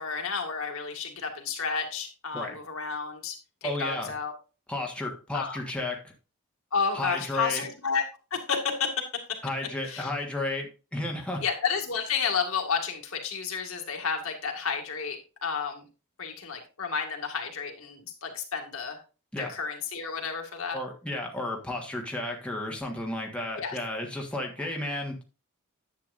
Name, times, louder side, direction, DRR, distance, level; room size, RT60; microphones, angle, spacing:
voice 1, 0.0-3.4 3.6-4.3 5.3-5.6 6.7-8.0 8.3-8.9 9.9-10.1 11.4-15.8 16.2-19.0 19.4-20.8 23.6-23.8 24.6-24.7, left 5 dB, 65° left, 2 dB, 2.1 m, -31 dB
voice 2, 3.6-4.1 4.7-6.0 6.9-7.6 9.4-11.4 19.3-19.5 20.7-25.2, left 2 dB, 5° left, -1 dB, 1.5 m, -33 dB
10.5 x 8.2 x 2.6 m, 0.33 s
head